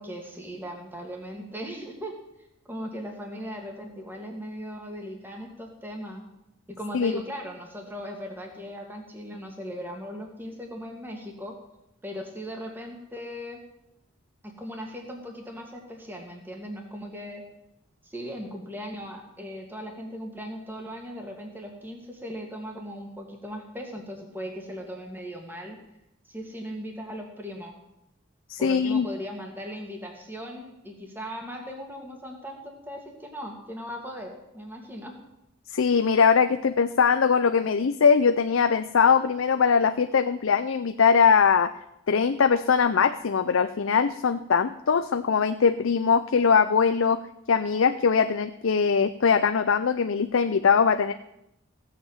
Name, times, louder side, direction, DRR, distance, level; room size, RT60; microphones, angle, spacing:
voice 1, 0.0-2.1 2.7-6.2 6.7-11.5 12.0-13.6 14.4-17.4 18.0-25.8 26.3-27.8 28.6-35.1, equal, 10° right, 1 dB, 2.2 m, -38 dB
voice 2, 28.5-29.1 35.7-41.7 42.1-47.2 47.5-51.1, left 6 dB, 85° left, 10 dB, 0.5 m, -21 dB
16.0 x 7.6 x 7.3 m, 0.85 s
head